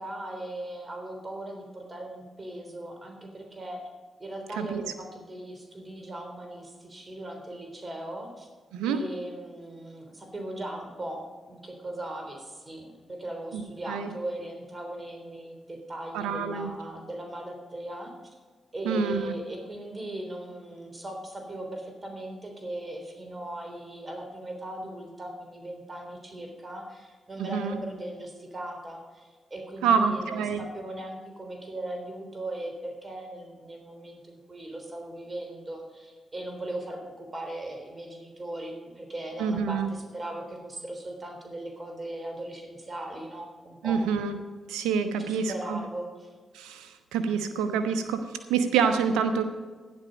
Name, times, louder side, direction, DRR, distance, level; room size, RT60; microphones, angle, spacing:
voice 1, 0.0-3.8 4.2-8.5 8.9-18.1 18.7-44.1 45.2-46.3, right 1 dB, 35° right, 3 dB, 3.5 m, -38 dB
voice 2, 8.7-9.0 13.5-13.6 13.9-14.1 16.1-16.7 18.8-19.2 27.4-27.8 29.8-30.6 39.4-39.9 43.8-44.4 44.7-45.8 46.5-49.4, right 6 dB, 85° right, 9 dB, 1.0 m, -27 dB
12.0 x 10.5 x 5.1 m, 1.4 s
supercardioid pair, 40°, 0 cm